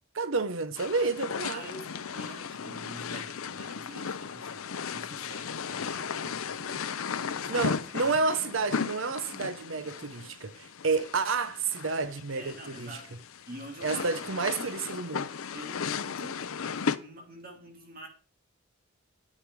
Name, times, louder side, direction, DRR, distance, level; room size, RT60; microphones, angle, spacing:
voice 1, 0.2-1.6 7.5-13.0 13.8-15.3, right 4 dB, 65° right, 0.8 m, -30 dB
sound 1, 0.8-17.0, left 6 dB, 80° left, 0.6 m, -36 dB
voice 2, 1.5-8.1 12.3-14.7 15.5-16.5 17.0-18.1, equal, 45° right, 2.8 m, -47 dB
9.8 x 8.5 x 4.7 m
head